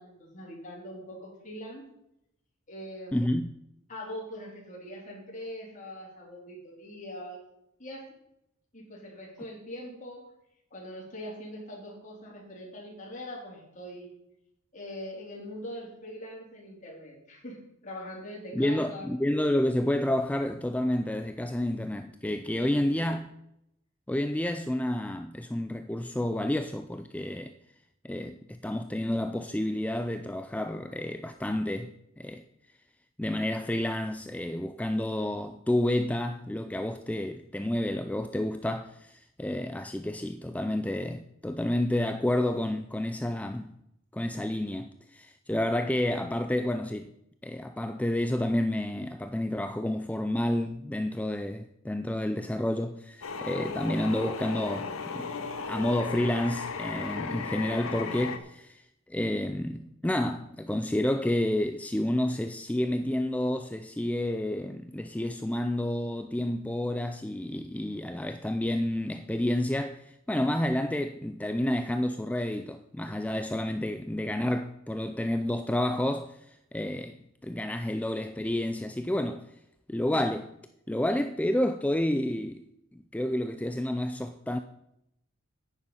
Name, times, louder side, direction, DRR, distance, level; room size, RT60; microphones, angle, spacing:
voice 1, 0.0-1.9 2.7-3.3 3.9-7.4 7.8-8.1 8.7-10.3 10.7-14.1 14.7-19.1 22.6-23.0 57.3-57.4, equal, 35° left, 3.8 m, -42 dB
voice 2, 3.1-3.5 18.5-23.3 24.1-27.5 28.0-32.4 33.2-43.7 44.1-47.1 47.4-55.3 55.7-58.8 59.1-79.5 79.9-80.5 80.9-82.6 82.9-84.6, left 1 dB, 5° left, 0.4 m, -30 dB
sound 1, 53.2-58.4, left 5 dB, 85° left, 1.0 m, -36 dB
9.8 x 9.6 x 5.7 m
head